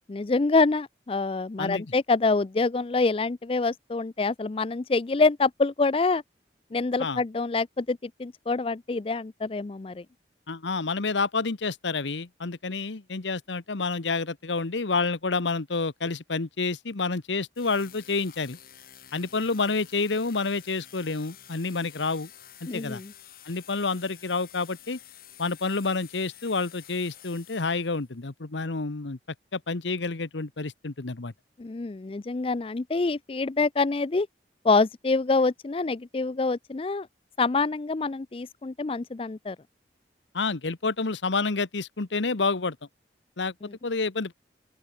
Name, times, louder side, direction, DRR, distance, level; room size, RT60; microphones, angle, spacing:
voice 1, 0.1-6.2 6.7-10.0 22.7-23.1 31.6-34.3 34.6-37.1 37.4-39.6 43.6-43.7, left 3 dB, 30° left, 0.4 m, -26 dB
voice 2, 10.5-18.6 19.1-22.3 22.6-23.0 23.4-25.0 25.4-29.2 29.5-31.3 40.3-42.8 43.4-43.5 43.8-44.3, left 4 dB, 85° left, 1.1 m, -29 dB
sound 1, 17.5-28.1, left 11 dB, 55° left, 7.8 m, -50 dB
open air
head